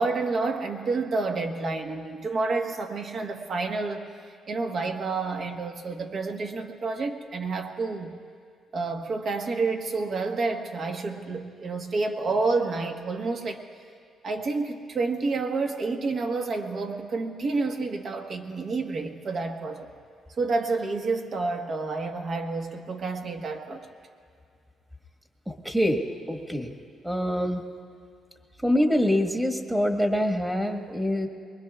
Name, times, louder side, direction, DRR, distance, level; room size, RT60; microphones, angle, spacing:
voice 1, 0.0-4.1 4.5-8.1 8.7-13.6 14.2-19.9 20.4-23.9, right 3 dB, 55° right, 4 dB, 1.4 m, -29 dB
voice 2, 25.5-26.8 27.0-27.6 28.6-31.3, equal, 10° right, 3 dB, 1.6 m, -25 dB
23.5 x 21.5 x 2.4 m, 2.2 s
cardioid pair, 90°, 0 cm